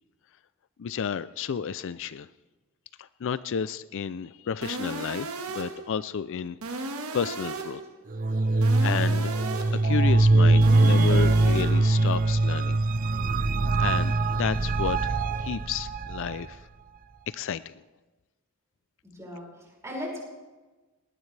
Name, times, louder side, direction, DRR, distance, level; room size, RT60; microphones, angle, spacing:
voice 1, 0.8-2.3 3.0-7.8 8.6-9.3 9.8-12.8 13.8-16.7 17.3-17.7, left 7 dB, 60° left, 15 dB, 0.4 m, -32 dB
sound 1, 4.6-5.9 6.6-7.9 8.6-9.9 10.6-11.9, right 3 dB, 75° right, 1.6 m, -35 dB
sound 2, 8.1-16.4, right 2 dB, 40° right, 0.5 m, -22 dB
voice 2, 19.1-20.2, left 1 dB, 15° right, -4 dB, 5.6 m, -38 dB
20.0 x 18.5 x 3.3 m, 1.2 s
head